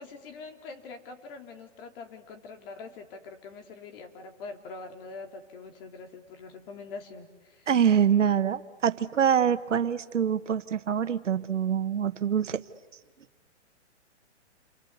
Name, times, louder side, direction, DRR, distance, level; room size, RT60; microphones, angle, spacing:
voice 1, 0.0-7.7, left 4 dB, 50° left, 4 dB, 3.8 m, -44 dB
voice 2, 7.7-12.6, right 8 dB, 85° right, 11 dB, 1.4 m, -25 dB
29.5 x 24.0 x 8.3 m, 1.3 s
hypercardioid pair, 140°, 36 cm